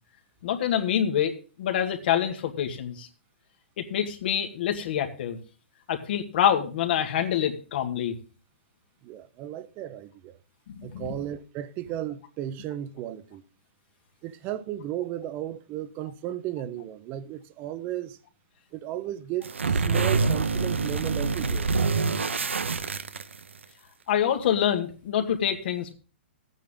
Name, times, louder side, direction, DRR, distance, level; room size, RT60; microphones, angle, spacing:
voice 1, 0.4-3.1 3.8-5.4 5.9-8.1 10.7-11.1 24.1-25.9, left 9 dB, 55° left, 2.1 m, -26 dB
voice 2, 9.0-10.4 10.8-13.4 14.2-18.2 18.7-21.7, right 12 dB, 30° right, 1.0 m, -35 dB
sound 1, 19.4-23.6, right 4 dB, 85° right, 1.0 m, -26 dB
13.5 x 9.3 x 3.7 m
hypercardioid pair, 125°, 6 cm